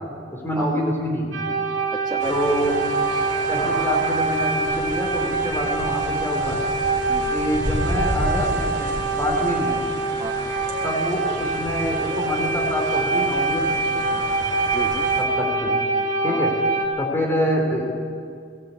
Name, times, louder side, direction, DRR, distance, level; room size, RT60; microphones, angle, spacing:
voice 1, 0.0-1.5 2.3-2.8 3.5-6.6 7.3-9.8 10.8-14.2 15.2-15.8 16.2-16.5 17.0-18.1, equal, 15° left, 0 dB, 4.1 m, -26 dB
voice 2, 0.6-0.9 1.9-2.4 7.1-7.4 10.2-10.5 14.7-15.1 16.3-16.5, right 2 dB, 20° right, 3 dB, 0.9 m, -32 dB
sound 1, 1.3-16.9, right 3 dB, 80° right, 3.3 m, -24 dB
sound 2, 2.2-15.2, right 1 dB, 60° right, 3.4 m, -32 dB
19.5 x 17.0 x 8.6 m, 2.2 s
head